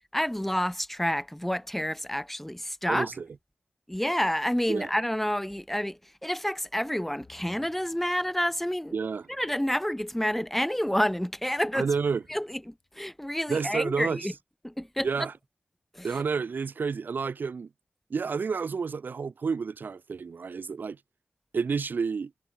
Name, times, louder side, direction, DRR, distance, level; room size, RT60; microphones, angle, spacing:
voice 1, 0.1-3.1 3.9-8.9 9.3-11.9 12.3-14.3 14.6-15.1 15.9-16.2, equal, 5° left, 0.4 m, -29 dB
voice 2, 2.9-3.3 4.7-4.9 8.9-9.3 11.7-12.2 13.5-14.3 15.0-15.3 16.0-17.7 18.1-21.0 21.5-22.3, right 5 dB, 75° right, 0.7 m, -30 dB
sound 1, 7.2-13.2, left 4 dB, 65° left, 5.0 m, -63 dB
cardioid pair, 50°, 3 cm